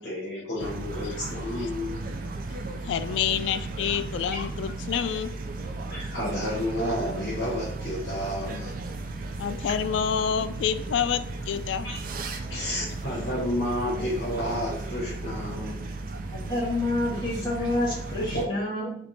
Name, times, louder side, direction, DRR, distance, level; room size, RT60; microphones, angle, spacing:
voice 1, 0.0-2.0 4.2-4.4 5.9-8.7 11.8-12.0 12.5-15.9 18.3-18.5, left 1 dB, 70° left, -6 dB, 1.2 m, -31 dB
sound 1, 0.6-18.5, right 2 dB, 50° right, 0.4 m, -35 dB
voice 2, 2.8-5.3 9.4-11.9 12.6-12.7, left 8 dB, 90° left, 12 dB, 0.3 m, -28 dB
voice 3, 16.3-19.0, left 2 dB, 25° left, -7 dB, 1.6 m, -28 dB
3.5 x 2.9 x 4.1 m, 0.64 s
head